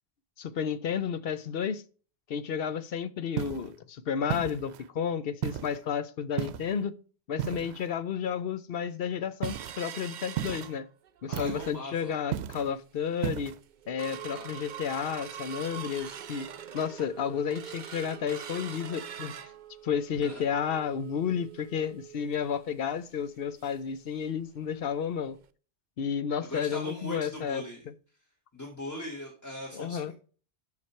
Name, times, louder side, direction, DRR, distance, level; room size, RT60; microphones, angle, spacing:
voice 1, 0.4-1.8 2.3-6.9 7.3-10.9 11.2-13.5 13.9-16.5 16.7-19.3 19.8-25.4 26.0-27.6 29.7-30.1, left 7 dB, 65° left, 0.9 m, -32 dB
sound 1, 3.4-3.7 4.3-4.9 5.4-5.8 6.4-6.8 7.4-7.9 9.4-9.8 10.4-10.8 11.3-11.8 12.3-12.7 13.2-13.6, right 11 dB, 85° right, 0.8 m, -34 dB
sound 2, 9.4-11.3 11.7-11.8 12.1-12.5 13.0-13.1 13.4-23.9 24.3-24.4 24.7-24.9 25.4-25.5, right 9 dB, 55° right, 0.7 m, -44 dB
voice 2, 11.3-12.2 14.3-14.5 20.1-20.4 26.5-27.9 28.5-30.1, equal, 15° left, 1.5 m, -40 dB
7.5 x 5.9 x 4.4 m
omnidirectional pair, 1.1 m